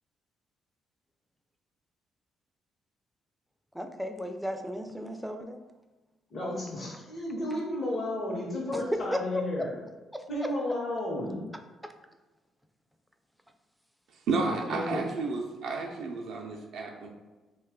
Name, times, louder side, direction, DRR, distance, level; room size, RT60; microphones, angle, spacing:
voice 1, 3.7-5.6 8.7-9.2 10.1-10.5 11.8-11.9, equal, ahead, 5 dB, 0.3 m, -35 dB
voice 2, 6.3-9.8 10.3-11.4 14.5-15.0, left 1 dB, 55° left, -4 dB, 0.7 m, -33 dB
voice 3, 14.3-17.1, right 3 dB, 75° right, 0 dB, 0.3 m, -32 dB
2.9 x 2.2 x 3.5 m, 1.2 s
cardioid pair, 90°, 0 cm